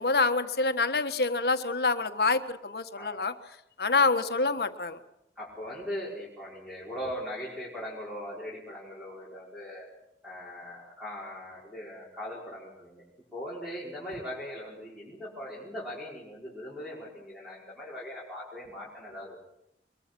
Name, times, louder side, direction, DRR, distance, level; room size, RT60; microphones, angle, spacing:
voice 1, 0.0-3.3 3.8-5.0, left 3 dB, 65° left, 8 dB, 1.5 m, -26 dB
voice 2, 5.4-9.9 10.2-13.0 13.3-19.3, equal, ahead, -6 dB, 5.6 m, -40 dB
23.5 x 22.5 x 6.2 m, 0.80 s
head